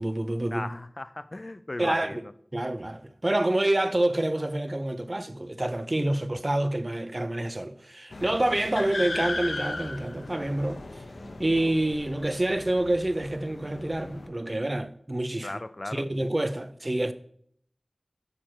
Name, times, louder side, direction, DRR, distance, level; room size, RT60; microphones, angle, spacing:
voice 1, 0.0-0.7 1.8-2.2 2.5-15.6 15.9-17.1, right 1 dB, 35° right, 0.5 m, -27 dB
voice 2, 0.5-2.3 15.4-16.1, left 2 dB, 45° left, 0.4 m, -37 dB
sound 1, 8.1-14.3, left 2 dB, 85° left, 0.7 m, -37 dB
6.6 x 5.9 x 4.4 m
wide cardioid pair, 45°, 0 cm